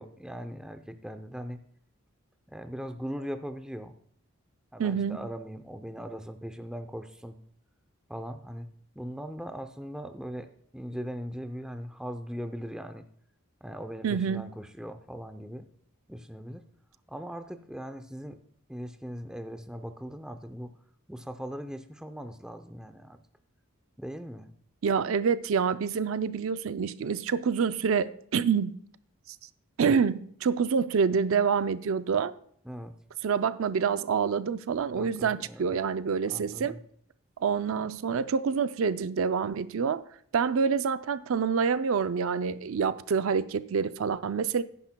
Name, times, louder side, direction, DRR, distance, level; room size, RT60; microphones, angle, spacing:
voice 1, 0.0-1.6 2.5-4.0 4.7-7.4 8.1-8.7 8.9-13.1 13.6-15.7 16.1-16.6 17.1-18.4 18.7-20.8 21.1-23.2 24.0-24.5 32.6-32.9 34.9-35.7 36.3-36.8, equal, 5° right, 0.5 m, -39 dB
voice 2, 4.8-5.2 14.0-14.5 24.8-28.8 29.3-29.4 29.8-32.3 33.2-36.8 37.4-40.0 40.3-44.6, right 6 dB, 70° right, 0.4 m, -27 dB
16.0 x 10.0 x 2.2 m
head